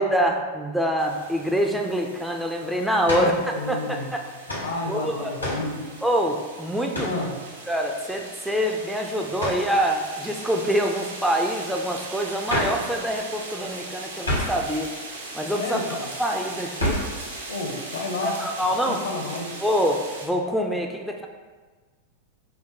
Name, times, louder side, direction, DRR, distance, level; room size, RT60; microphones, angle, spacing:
voice 1, 0.0-3.3 3.7-4.2 4.9-5.3 6.0-7.2 7.7-14.9 15.3-15.8 16.2-17.0 18.2-19.0 19.6-21.3, equal, 5° right, 2 dB, 0.3 m, -25 dB
sound 1, 1.0-20.3, right 2 dB, 70° right, 0.6 m, -39 dB
sound 2, 3.0-3.4 4.5-4.7 5.4-5.7 6.9-7.2 9.4-9.7 12.5-12.8 14.2-14.6 16.8-17.1, left 1 dB, 85° left, 1.2 m, -27 dB
voice 2, 3.0-4.1 4.6-5.8 7.0-7.4 15.6-16.1 17.5-18.4 18.7-19.5, left 2 dB, 70° left, 1 dB, 0.7 m, -31 dB
4.4 x 2.1 x 3.8 m, 1.4 s
figure-of-eight pair, 90°, 0 cm